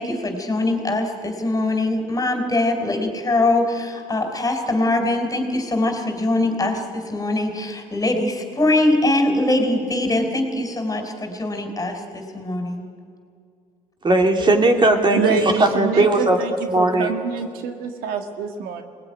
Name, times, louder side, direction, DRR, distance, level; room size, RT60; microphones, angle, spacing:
voice 1, 0.0-12.9, left 2 dB, 25° left, 6 dB, 3.9 m, -22 dB
voice 2, 14.0-16.4 16.7-17.1, right 2 dB, 30° right, 4 dB, 2.9 m, -18 dB
voice 3, 15.1-18.8, right 5 dB, 75° right, 6 dB, 1.8 m, -26 dB
22.0 x 19.0 x 9.6 m, 2.3 s
supercardioid pair, 80°, 15 cm